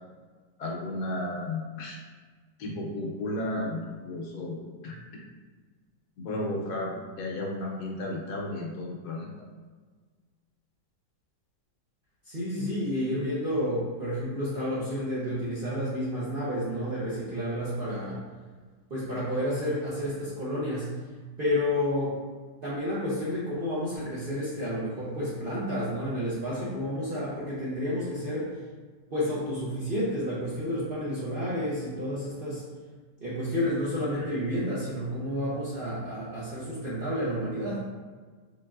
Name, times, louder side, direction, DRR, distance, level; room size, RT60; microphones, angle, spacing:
voice 1, 0.6-2.0 2.6-5.0 6.2-9.3 34.2-34.3, left 1 dB, 75° left, -1 dB, 1.2 m, -33 dB
voice 2, 12.3-18.2 18.9-20.9 21.4-22.2 22.6-28.5 29.1-32.6 33.2-37.8, equal, 50° right, -9 dB, 0.6 m, -30 dB
3.8 x 3.5 x 2.3 m, 1.5 s
omnidirectional pair, 1.8 m